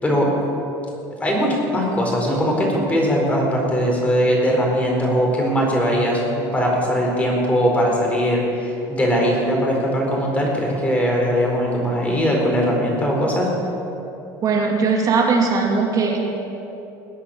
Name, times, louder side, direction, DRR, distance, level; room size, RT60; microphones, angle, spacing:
voice 1, 1.2-13.5, equal, 15° left, -1 dB, 4.4 m, -20 dB
voice 2, 14.4-16.2, right 4 dB, 40° right, 0 dB, 2.5 m, -19 dB
20.5 x 8.8 x 7.3 m, 2.9 s
cardioid pair, 120°, 9 cm